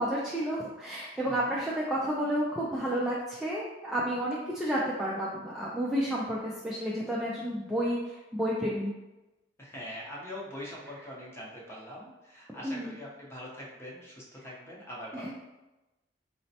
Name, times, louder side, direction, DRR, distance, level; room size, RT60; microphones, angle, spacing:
voice 1, 0.0-8.9 12.6-12.9 15.1-15.3, equal, ahead, -7 dB, 0.3 m, -31 dB
voice 2, 1.2-1.6 9.6-15.3, left 1 dB, 15° left, -5 dB, 0.7 m, -43 dB
4.1 x 2.1 x 2.7 m, 1.1 s
head